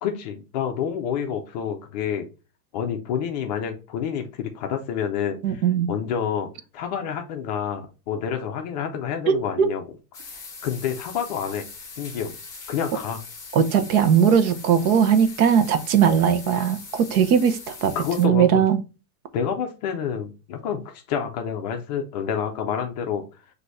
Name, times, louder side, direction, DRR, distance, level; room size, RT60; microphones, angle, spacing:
voice 1, 0.0-2.3 2.7-9.8 10.2-11.6 12.0-12.4 12.7-13.2 17.9-18.6 19.3-23.2, left 8 dB, 30° left, 0.4 m, -28 dB
voice 2, 5.4-5.9 9.3-9.7 13.5-18.8, right 8 dB, 70° right, 0.9 m, -19 dB
sound 1, 10.1-18.3, left 4 dB, 5° left, 0.9 m, -41 dB
6.1 x 2.7 x 2.6 m
supercardioid pair, 155°, 45 cm